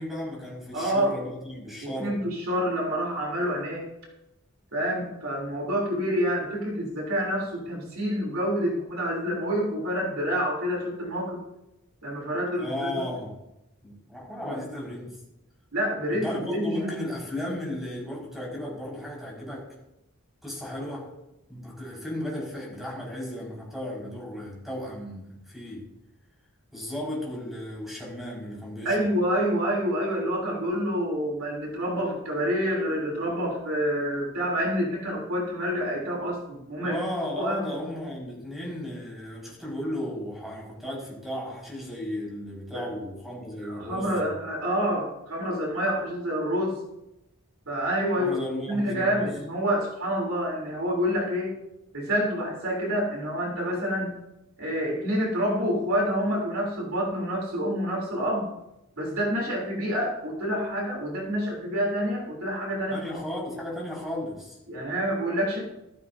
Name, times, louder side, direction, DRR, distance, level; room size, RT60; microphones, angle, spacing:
voice 1, 0.0-2.2 12.6-13.3 13.8-15.1 16.1-19.7 20.4-21.1 21.5-25.9 26.7-29.0 36.8-44.4 48.2-49.3 62.9-64.6, left 1 dB, ahead, -4 dB, 5.3 m, -35 dB
voice 2, 0.7-1.1 1.8-3.9 4.7-11.4 12.0-13.0 14.4-14.6 15.7-16.9 28.8-37.0 37.4-37.7 42.7-42.9 43.6-46.8 47.7-48.4 48.7-51.6 51.9-54.1 54.6-58.5 59.0-63.1 64.7-65.6, equal, 65° right, -1 dB, 3.4 m, -27 dB
14.5 x 14.5 x 2.7 m, 0.90 s
head